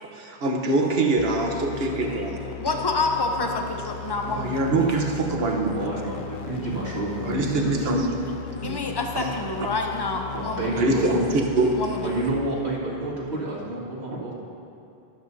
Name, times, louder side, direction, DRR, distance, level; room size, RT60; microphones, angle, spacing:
voice 1, 0.0-2.5 4.3-5.7 7.2-8.1 8.6-8.8 9.1-9.3 10.8-11.8, right 2 dB, 70° right, 2 dB, 1.3 m, -24 dB
sound 1, 1.2-13.1, left 8 dB, 60° left, 0.7 m, -37 dB
voice 2, 2.6-4.9 5.2-5.3 8.6-10.8 11.8-12.1, left 3 dB, 25° left, 3 dB, 0.7 m, -28 dB
voice 3, 5.7-7.7 10.3-11.1 12.0-14.3, right 2 dB, 90° right, -7 dB, 2.4 m, -29 dB
13.0 x 12.5 x 2.7 m, 2.7 s
omnidirectional pair, 1.1 m